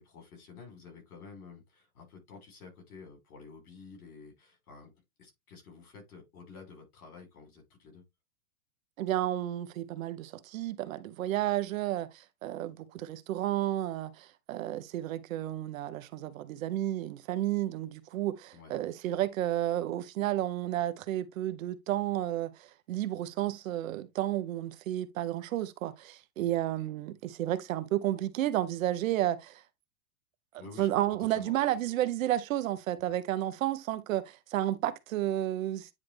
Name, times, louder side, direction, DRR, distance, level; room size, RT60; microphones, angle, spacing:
voice 1, 0.0-4.9 5.2-8.0 18.5-18.7 26.4-26.6 30.6-30.9 31.2-31.6 33.0-33.2, left 5 dB, 85° left, 5.1 m, -50 dB
voice 2, 9.0-29.6 30.8-35.9, right 13 dB, 65° right, 1.0 m, -32 dB
9.6 x 3.3 x 3.3 m
hypercardioid pair, 145°, 44 cm